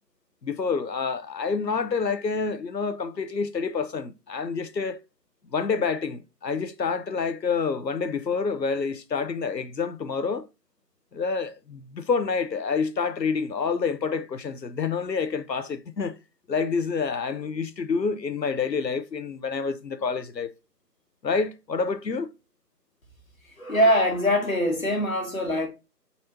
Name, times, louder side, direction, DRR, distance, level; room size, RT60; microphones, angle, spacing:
voice 1, 0.4-5.0 5.5-10.5 11.1-16.2 16.5-20.5 21.2-22.3 23.8-23.9, left 5 dB, 85° left, 0.8 m, -28 dB
voice 2, 23.6-25.7, equal, 55° left, 1.6 m, -23 dB
4.5 x 4.2 x 2.6 m
figure-of-eight pair, 170°, 49 cm